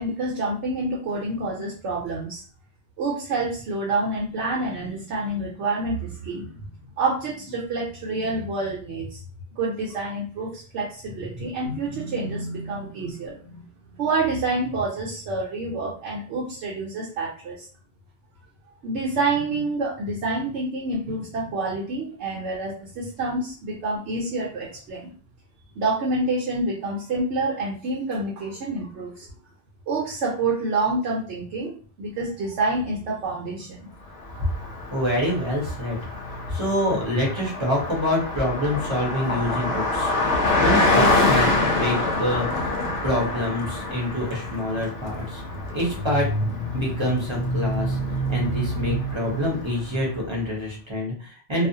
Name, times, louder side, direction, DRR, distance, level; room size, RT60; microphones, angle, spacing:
voice 1, 0.0-2.4 3.0-6.6 7.0-9.2 9.6-13.6 14.0-17.7 18.8-25.1 25.8-29.3 29.9-31.7 32.0-33.9, right 2 dB, 70° right, -2 dB, 0.9 m, -27 dB
Car passing by, 34.2-50.2, left 2 dB, 75° left, 0.9 m, -26 dB
voice 2, 34.9-36.0 36.5-40.1 40.6-42.7 43.0-45.4 45.7-48.0 48.3-51.7, left 1 dB, 30° right, -3 dB, 0.7 m, -26 dB
2.4 x 2.1 x 2.6 m, 0.41 s
omnidirectional pair, 1.2 m